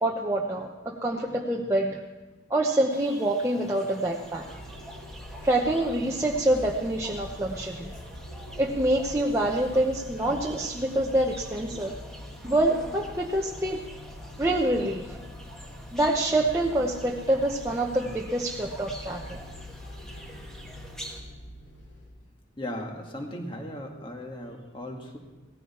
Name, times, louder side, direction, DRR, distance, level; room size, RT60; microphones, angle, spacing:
voice 1, 0.0-2.0 2.5-4.5 5.4-7.9 8.6-12.0 12.4-13.8 14.4-15.2 15.9-19.4, right 1 dB, 15° right, -2 dB, 0.8 m, -26 dB
sound 1, 2.9-21.2, right 1 dB, 5° left, 1.5 m, -47 dB
sound 2, 4.0-22.2, left 1 dB, 80° left, 2.7 m, -44 dB
voice 2, 22.6-25.2, left 1 dB, 25° left, 2 dB, 2.0 m, -37 dB
17.5 x 15.0 x 4.4 m, 1.2 s
head